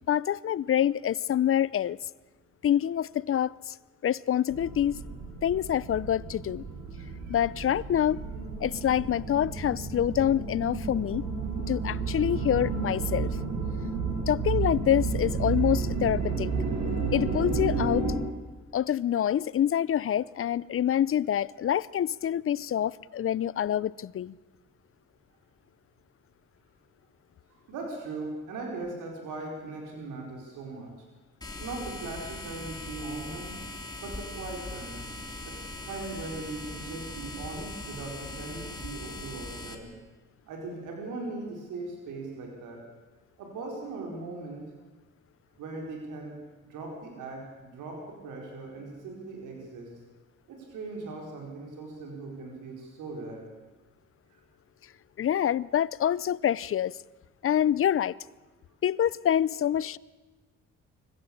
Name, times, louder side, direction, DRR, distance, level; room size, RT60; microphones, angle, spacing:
voice 1, 0.1-2.0 2.6-3.8 4.0-5.0 5.4-6.6 7.3-8.2 8.6-11.3 11.7-13.3 14.3-16.5 17.1-18.1 18.7-24.3 55.2-57.0 57.4-58.1 58.8-60.0, left 10 dB, 45° left, 0.6 m, -26 dB
sound 1, 4.5-18.1, right 4 dB, 70° right, 6.0 m, -31 dB
voice 2, 6.9-7.4 27.7-30.9 31.6-33.6 34.0-35.0 35.4-35.5 35.8-39.9 40.4-42.8 43.4-44.7 45.6-46.3 46.7-49.9 50.5-53.4, right 3 dB, 90° right, 4.7 m, -39 dB
sound 2, 31.4-39.7, left 2 dB, 15° left, 3.2 m, -40 dB
24.5 x 15.5 x 8.7 m
cardioid pair, 90°, 30 cm